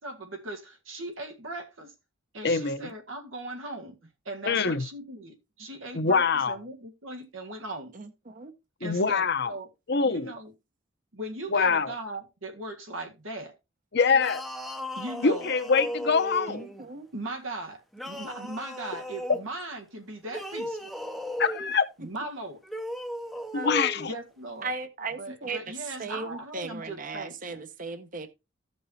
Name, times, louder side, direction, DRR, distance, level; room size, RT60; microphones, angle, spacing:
voice 1, 0.0-1.9 2.3-4.0 4.2-7.9 8.8-9.7 10.0-10.5 11.1-13.5 14.9-15.5 17.1-20.9 22.0-22.6 24.0-24.8 25.2-27.6, right 2 dB, 90° right, 1.7 m, -39 dB
voice 2, 2.4-2.9 4.5-4.8 5.9-6.6 8.8-9.5 9.9-10.3 11.5-11.9 13.9-14.4 15.2-16.6 21.4-21.9 23.5-24.1, left 5 dB, 55° left, 0.8 m, -24 dB
voice 3, 7.9-8.5 16.5-17.1 23.5-23.7 24.6-28.3, right 4 dB, 45° right, 0.8 m, -37 dB
sound 1, 14.1-16.9 17.9-19.4 20.2-21.8 22.6-24.1, equal, ahead, 0.6 m, -36 dB
15.5 x 5.4 x 2.8 m
head